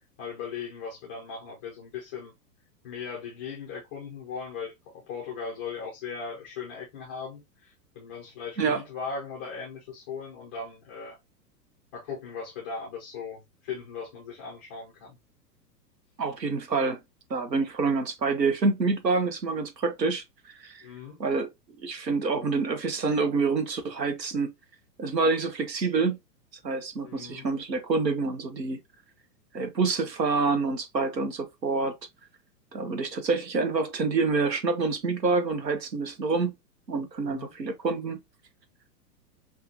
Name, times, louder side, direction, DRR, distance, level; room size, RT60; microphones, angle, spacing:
voice 1, 0.2-2.3 2.8-11.2 11.9-15.2 20.8-21.2 27.0-27.5 37.2-37.5, left 5 dB, 10° left, 0.3 m, -38 dB
voice 2, 16.2-17.0 17.3-20.2 20.6-20.8 21.2-21.5 21.8-24.5 25.0-26.2 26.6-28.8 29.5-32.0 32.7-36.5 36.9-38.2, right 4 dB, 85° right, 1.0 m, -27 dB
5.6 x 2.4 x 2.7 m
figure-of-eight pair, 105°, 49 cm